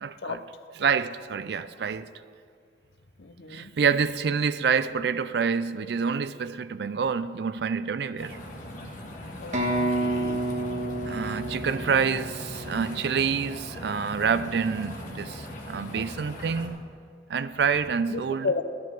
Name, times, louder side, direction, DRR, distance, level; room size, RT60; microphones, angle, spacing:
voice 1, 0.0-0.4 0.8-2.1 3.5-8.4 11.1-16.8 17.3-18.5, right 6 dB, 60° right, 0.4 m, -27 dB
voice 2, 3.2-3.7 9.4-9.6 10.0-10.4 18.1-18.6, left 4 dB, 65° left, 0.7 m, -32 dB
sound 1, 8.2-16.7, left 1 dB, 45° left, 1.4 m, -40 dB
sound 2, 9.5-13.3, right 1 dB, 40° right, 1.4 m, -30 dB
12.5 x 10.5 x 4.6 m
head